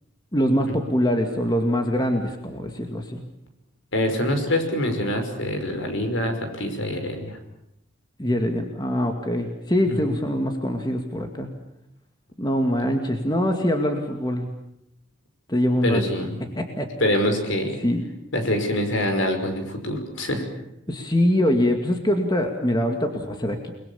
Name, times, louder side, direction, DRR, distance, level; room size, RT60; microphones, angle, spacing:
voice 1, 0.3-3.2 8.2-11.5 12.4-14.5 15.5-16.0 16.6-16.9 17.8-18.1 20.9-23.7, equal, 20° left, 4 dB, 2.2 m, -23 dB
voice 2, 3.9-7.4 9.9-10.2 15.8-16.4 17.0-17.8 18.3-20.4, left 1 dB, 70° left, 6 dB, 5.5 m, -25 dB
30.0 x 21.5 x 7.2 m, 0.83 s
head